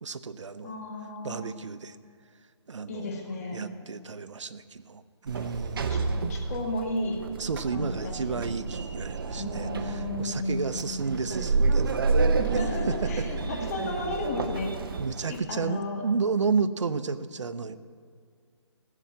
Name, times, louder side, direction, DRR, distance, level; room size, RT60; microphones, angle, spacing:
voice 1, 0.0-0.7 1.2-2.0 2.7-3.1 3.5-5.9 7.4-12.6 12.9-13.0 15.0-17.8, right 5 dB, 85° right, 12 dB, 0.7 m, -32 dB
voice 2, 0.6-1.6 2.9-3.6 5.9-6.0 6.3-7.2 7.7-8.4 9.4-11.0 12.5-14.7 15.3-16.0, left 2 dB, 30° left, 0 dB, 2.0 m, -33 dB
Sliding door, 5.3-15.4, right 3 dB, 50° right, 0.9 m, -29 dB
15.0 x 6.9 x 7.5 m, 2.1 s
hypercardioid pair, 165°, 15 cm